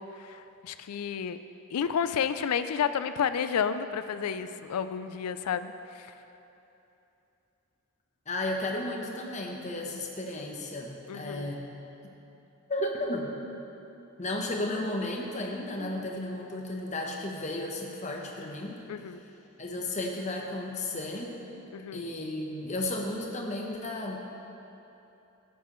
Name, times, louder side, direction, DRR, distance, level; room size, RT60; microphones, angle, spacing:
voice 1, 0.0-1.4 1.7-6.1 11.1-11.6 18.9-19.2 21.7-22.0, left 7 dB, 90° left, 11 dB, 0.4 m, -31 dB
voice 2, 8.3-11.7 12.7-13.4 14.2-18.8 19.6-21.4 21.9-24.2, left 1 dB, 30° left, 0 dB, 0.9 m, -33 dB
12.5 x 8.3 x 3.1 m, 3.0 s
head